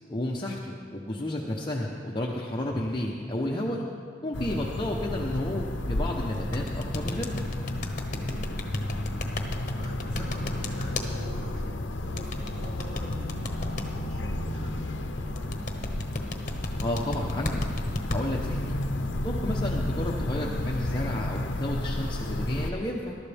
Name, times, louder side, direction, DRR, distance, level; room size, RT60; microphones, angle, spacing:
voice 1, 0.1-3.8 4.2-7.4 16.8-17.6 18.1-18.8 19.2-23.2, left 1 dB, 25° left, -2 dB, 0.9 m, -32 dB
sound 1, 4.3-22.7, left 1 dB, 80° left, 0.8 m, -32 dB
sound 2, 6.5-11.1 12.2-13.8 15.3-18.2, left 2 dB, 45° left, 1.1 m, -33 dB
voice 2, 8.2-8.5 9.5-15.5, equal, 75° right, -5 dB, 3.8 m, -46 dB
21.5 x 12.5 x 3.5 m, 2.3 s
head